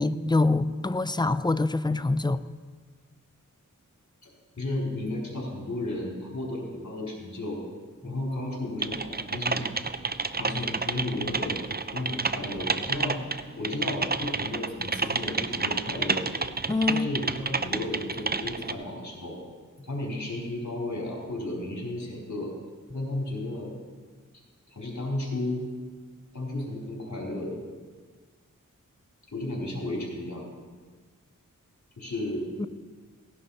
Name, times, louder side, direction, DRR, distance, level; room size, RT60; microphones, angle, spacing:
voice 1, 0.0-2.4 8.0-8.2 16.7-17.1 32.6-32.7, left 2 dB, 15° left, 13 dB, 0.5 m, -25 dB
voice 2, 4.6-7.6 8.0-9.7 10.3-11.6 11.9-13.2 13.6-16.3 16.9-19.4 19.8-22.5 22.9-23.7 24.7-25.6 26.3-27.6 29.3-30.5 32.0-32.5, left 1 dB, 60° left, -3 dB, 4.3 m, -33 dB
Typing, 8.8-18.7, right 4 dB, 30° right, 0.6 m, -30 dB
17.5 x 11.0 x 4.3 m, 1.5 s
wide cardioid pair, 50°, 32 cm